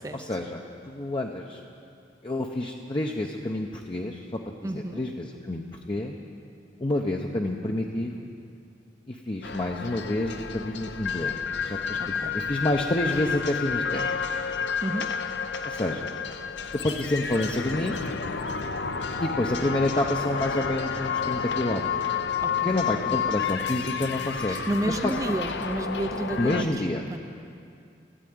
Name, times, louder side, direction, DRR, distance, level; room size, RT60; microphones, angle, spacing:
voice 1, 0.1-1.6 2.2-6.2 6.8-8.3 9.1-11.4 11.6-12.0 12.3-14.0 15.6-16.1 16.8-18.0 19.2-21.9 22.6-24.6 24.9-25.1 26.4-27.0, left 1 dB, 30° left, 0 dB, 0.7 m, -28 dB
voice 2, 4.6-5.0 12.0-12.3 14.8-15.1 22.4-22.8 24.5-27.2, right 1 dB, 20° right, 7 dB, 0.5 m, -31 dB
sound 1, 9.4-26.6, left 6 dB, 70° left, 0.7 m, -30 dB
14.0 x 9.0 x 9.3 m, 2.4 s
head